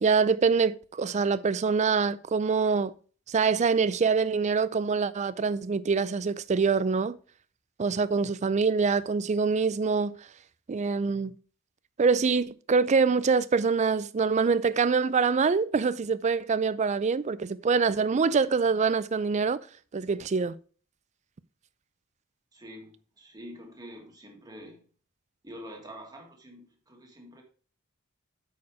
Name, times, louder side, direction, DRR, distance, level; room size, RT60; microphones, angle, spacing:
voice 1, 0.0-2.9 3.3-7.2 7.8-10.2 10.7-11.4 12.0-19.6 19.9-20.5, right 5 dB, 35° right, 0.4 m, -25 dB
voice 2, 22.5-24.9 25.4-27.4, equal, 20° right, 1.9 m, -46 dB
8.5 x 4.8 x 4.8 m
head